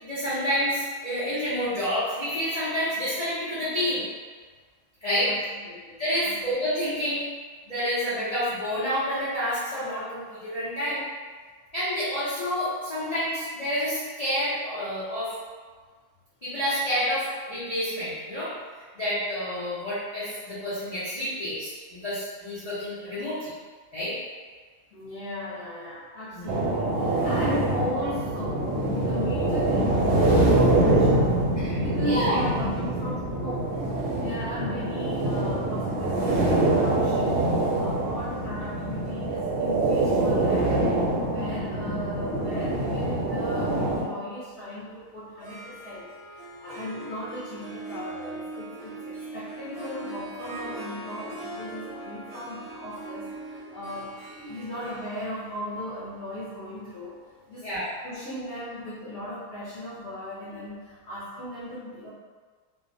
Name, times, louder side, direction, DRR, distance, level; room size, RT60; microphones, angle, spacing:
voice 1, 0.0-4.0 5.0-5.3 6.0-7.3 7.7-11.0 11.7-15.3 16.4-18.5 18.9-23.5 23.9-24.2 26.3-26.5 31.6-31.8 32.0-32.4 57.6-57.9, equal, 85° left, -13 dB, 0.3 m, -29 dB
voice 2, 5.6-6.4 24.9-31.4 31.8-33.8 34.2-46.1 46.3-57.2 57.5-57.7 58.0-62.1, equal, 60° left, -10 dB, 0.7 m, -37 dB
sound 1, 26.5-44.1, right 2 dB, 90° right, 1.2 m, -24 dB
Harp, 45.3-58.2, right 2 dB, 60° right, 0.7 m, -41 dB
2.6 x 2.0 x 2.5 m, 1.5 s
omnidirectional pair, 1.7 m